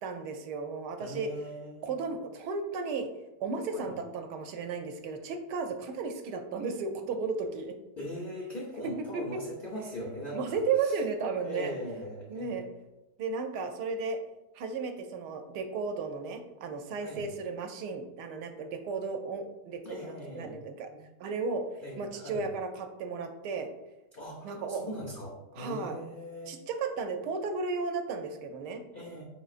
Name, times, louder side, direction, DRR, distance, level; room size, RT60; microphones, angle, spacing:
voice 1, 0.0-1.3 1.8-3.1 3.4-7.7 9.1-9.2 10.3-11.7 12.3-12.7 13.2-14.2 14.5-20.9 21.2-21.6 22.0-23.7 24.4-24.8 25.6-26.0 26.5-28.8, right 4 dB, 80° right, 6 dB, 1.1 m, -34 dB
voice 2, 1.0-1.9 3.7-3.9 8.0-11.0 11.4-12.7 17.0-17.3 19.8-20.6 20.9-21.0 21.8-22.4 24.1-26.5 28.9-29.2, equal, 90° left, -3 dB, 0.4 m, -40 dB
5.1 x 3.8 x 2.4 m, 1.0 s
omnidirectional pair, 1.8 m